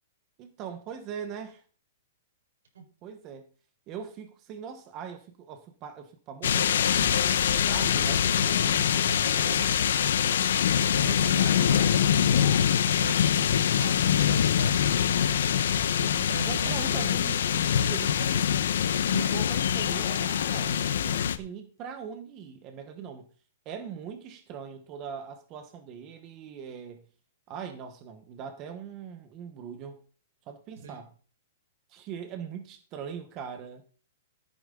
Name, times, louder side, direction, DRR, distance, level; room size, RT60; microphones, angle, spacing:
voice 1, 0.4-1.6 3.0-3.5 3.9-9.8 10.9-12.0 16.5-18.6 19.0-23.2 23.6-27.0 27.5-30.0 30.5-31.1 31.9-33.8, right 7 dB, 25° right, 1.1 m, -41 dB
sound 1, 6.4-21.4, left 9 dB, 70° left, 1.1 m, -24 dB
voice 2, 11.0-17.1 30.8-31.0, right 5 dB, 80° right, 4.8 m, -41 dB
15.0 x 9.1 x 3.9 m
hypercardioid pair, 170°, 0 cm